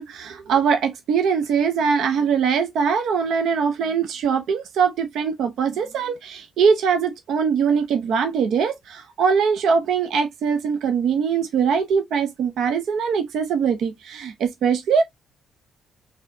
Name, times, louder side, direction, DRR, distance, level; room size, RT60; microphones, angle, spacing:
voice 1, 0.0-15.0, right 6 dB, 75° right, 0.6 m, -22 dB
4.0 x 2.8 x 2.6 m
cardioid pair, 90°, 0 cm